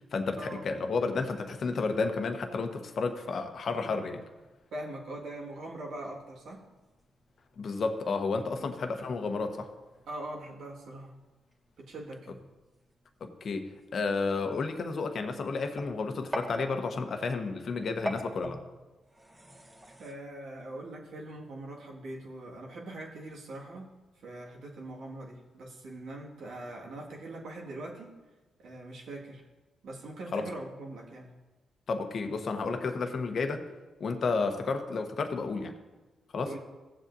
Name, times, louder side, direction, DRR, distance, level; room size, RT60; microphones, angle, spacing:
voice 1, 0.1-4.2 7.6-9.7 13.2-18.6 30.3-30.5 31.9-33.7 34.0-35.8 36.3-36.5, left 4 dB, 60° left, 6 dB, 1.1 m, -31 dB
voice 2, 3.6-4.1 4.7-6.6 8.6-8.7 10.1-11.1 11.8-12.4 20.0-23.9 24.2-28.1 28.6-29.4 29.8-31.3 36.4-36.6, right 1 dB, 75° right, -2 dB, 2.0 m, -42 dB
sound 1, 4.1-20.1, equal, 25° right, 1.8 m, -47 dB
15.5 x 7.5 x 2.7 m, 1.1 s
supercardioid pair, 55°, 0 cm